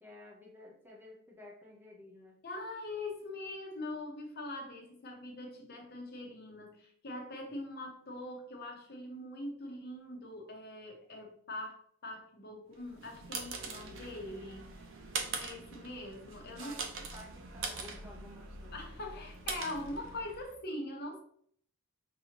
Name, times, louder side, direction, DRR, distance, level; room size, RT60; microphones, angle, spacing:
voice 1, 0.0-2.4 16.6-18.8, left 1 dB, 10° right, -2 dB, 0.7 m, -53 dB
voice 2, 2.4-14.8 15.4-16.8 18.7-21.2, left 1 dB, 50° left, 2 dB, 0.8 m, -42 dB
sound 1, 12.8-20.6, right 4 dB, 60° right, 0.7 m, -42 dB
5.4 x 2.8 x 2.9 m, 0.63 s
head